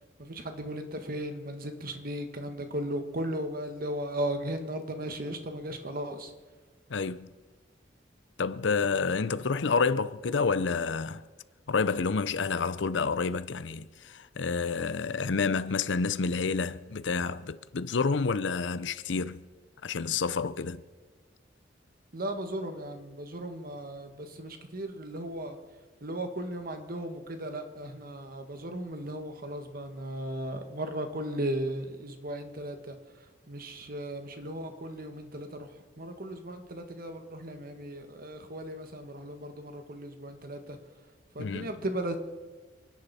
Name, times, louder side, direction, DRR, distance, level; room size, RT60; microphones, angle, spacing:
voice 1, 0.2-6.3 22.1-25.6 26.0-33.0 33.5-40.8 41.3-42.2, right 1 dB, 50° right, 1.6 m, -36 dB
voice 2, 6.9-7.3 8.4-11.2 11.7-19.4 19.8-20.8 41.4-41.7, left 4 dB, 75° left, 0.6 m, -29 dB
29.0 x 10.5 x 4.3 m
head